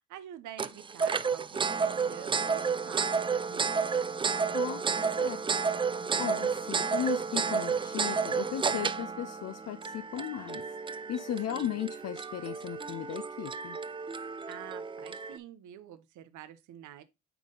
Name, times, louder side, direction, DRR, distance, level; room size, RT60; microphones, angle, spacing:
voice 1, 0.0-4.1 11.5-11.8 14.5-17.0, right 11 dB, 75° right, 0.8 m, -47 dB
sound 1, 0.6-15.4, right 5 dB, 15° right, 0.3 m, -31 dB
voice 2, 6.2-13.8, left 11 dB, 55° left, 0.6 m, -36 dB
9.2 x 3.7 x 3.8 m
cardioid pair, 90°, 30 cm